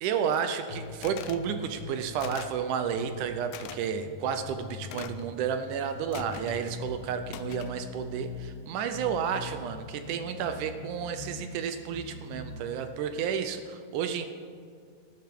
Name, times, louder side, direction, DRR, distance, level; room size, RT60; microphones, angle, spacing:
voice 1, 0.0-14.3, right 7 dB, 80° right, 8 dB, 1.9 m, -31 dB
sound 1, 0.7-2.5 2.9-5.5 5.9-8.5 8.9-11.5 11.9-12.6, left 4 dB, 65° left, 3.3 m, -42 dB
sound 2, 1.0-1.4 2.2-2.6 3.5-3.8 4.9-5.3 6.1-6.6 7.3-7.8, left 11 dB, 80° left, 2.2 m, -42 dB
19.5 x 11.5 x 3.7 m, 2.2 s
omnidirectional pair, 4.2 m